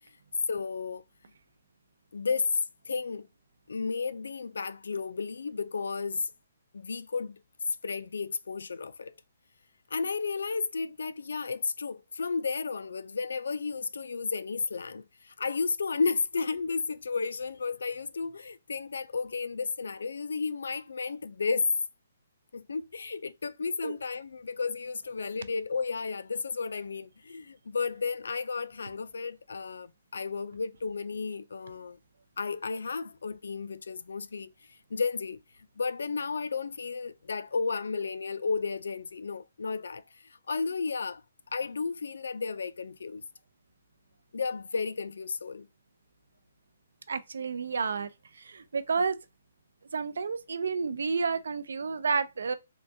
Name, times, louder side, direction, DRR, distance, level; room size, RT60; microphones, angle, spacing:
voice 1, 0.5-1.0 2.1-3.3 3.7-6.3 6.7-7.4 7.8-9.1 9.9-21.7 22.5-32.0 32.4-35.4 35.8-41.2 41.5-43.2 44.3-45.7, left 4 dB, 85° left, 0.3 m, -33 dB
voice 2, 47.1-48.1 48.4-49.2 49.9-52.5, right 5 dB, 75° right, 0.4 m, -30 dB
3.6 x 2.3 x 2.6 m
hypercardioid pair, 165°, 0 cm